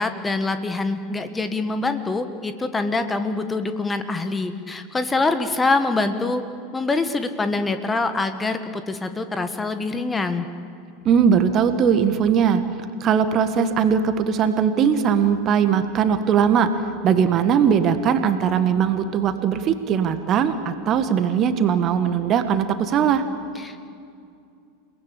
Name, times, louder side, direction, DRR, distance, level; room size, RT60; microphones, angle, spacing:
voice 1, 0.0-6.4 6.7-10.5 23.5-23.9, left 3 dB, 15° left, 9 dB, 1.6 m, -25 dB
voice 2, 11.1-12.6 13.0-16.7 17.0-23.2, right 7 dB, 35° right, 9 dB, 1.8 m, -20 dB
29.5 x 19.0 x 8.6 m, 2.4 s
figure-of-eight pair, 85°, 0 cm